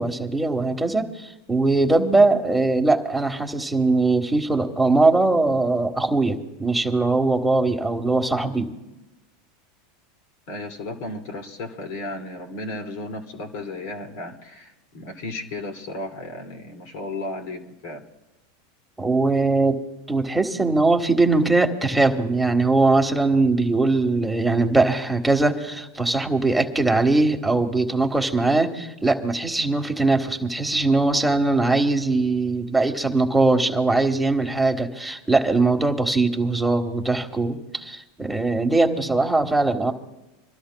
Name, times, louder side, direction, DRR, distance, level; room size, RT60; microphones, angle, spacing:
voice 1, 0.0-8.7 19.0-19.8 20.1-39.9, right 3 dB, 5° right, 4 dB, 1.4 m, -21 dB
voice 2, 10.5-18.0, left 2 dB, 65° left, 4 dB, 2.2 m, -34 dB
27.0 x 13.0 x 2.3 m, 1.0 s
hypercardioid pair, 95°, 0 cm